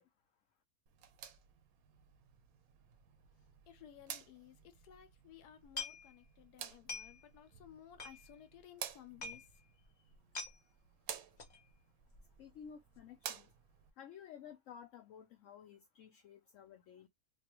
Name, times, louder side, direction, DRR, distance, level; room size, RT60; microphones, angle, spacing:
sound 1, 0.9-13.9, right 9 dB, 70° right, 1.0 m, -52 dB
voice 1, 3.7-9.4, left 11 dB, 85° left, 1.2 m, -57 dB
sound 2, 5.6-6.4 6.7-7.3 7.6-7.7 8.0-8.6 8.9-9.0 9.2-9.5 9.8-9.9 10.1-10.6 11.4-11.6 12.0-12.3 12.6-12.7, left 3 dB, 40° left, 0.7 m, -45 dB
voice 2, 12.4-13.5 14.0-17.1, left 8 dB, 65° left, 0.9 m, -54 dB
3.3 x 2.3 x 3.0 m
omnidirectional pair, 1.6 m